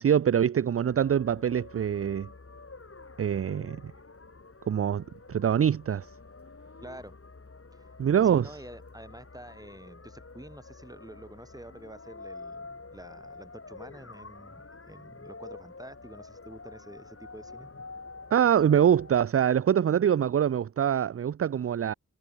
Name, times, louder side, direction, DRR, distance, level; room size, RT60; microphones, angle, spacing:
voice 1, 0.0-2.3 3.2-3.9 4.7-6.1 8.0-8.5 18.3-21.9, right 9 dB, 45° right, 0.4 m, -24 dB
sound 1, 0.8-19.3, left 3 dB, 40° left, 5.6 m, -48 dB
voice 2, 6.8-7.2 7.7-17.7, right 1 dB, 10° right, 3.4 m, -48 dB
wide cardioid pair, 95°, 33 cm